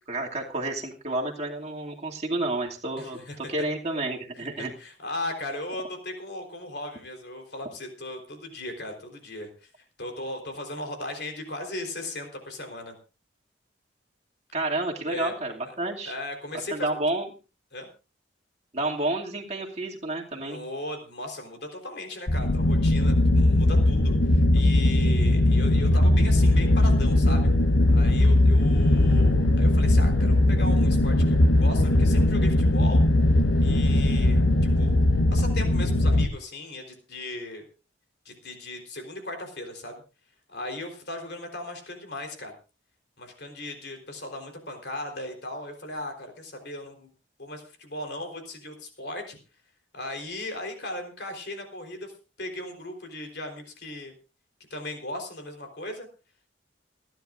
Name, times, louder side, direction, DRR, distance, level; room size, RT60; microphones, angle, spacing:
voice 1, 0.1-4.7 14.5-16.1 16.7-17.3 18.7-20.6, right 2 dB, 35° right, -1 dB, 2.5 m, -30 dB
voice 2, 3.0-3.5 4.4-9.7 10.0-13.0 15.1-15.3 16.0-16.9 17.7-17.9 20.4-27.5 27.9-33.0 33.6-34.4 34.8-34.9 35.3-37.6 38.3-40.0 40.5-42.5 43.2-47.1 47.4-49.4 49.9-52.1 52.4-54.1 54.7-56.1, left 1 dB, 55° left, 4 dB, 3.9 m, -37 dB
sound 1, 22.3-36.3, left 1 dB, 85° left, 1.1 m, -20 dB
29.0 x 10.5 x 2.6 m, 0.33 s
head